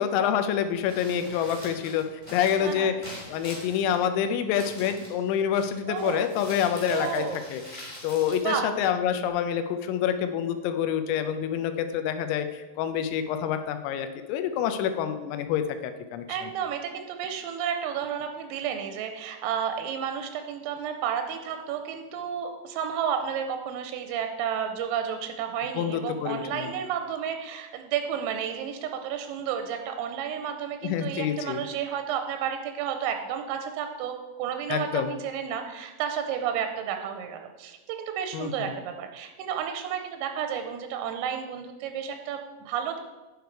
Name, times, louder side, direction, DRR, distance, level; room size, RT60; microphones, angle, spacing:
voice 1, 0.0-2.0 2.3-2.9 3.3-7.3 7.5-16.2 25.8-26.7 30.8-31.6 34.7-35.1 38.3-38.7, left 9 dB, 85° left, 8 dB, 3.3 m, -27 dB
Crumpling crinkling, 0.7-9.3, equal, 15° left, 1.3 m, -44 dB
voice 2, 2.6-2.9 5.9-6.2 6.9-7.4 8.4-8.7 16.3-43.0, right 8 dB, 85° right, 6 dB, 3.2 m, -31 dB
9.6 x 6.8 x 4.6 m, 1.1 s
omnidirectional pair, 6.0 m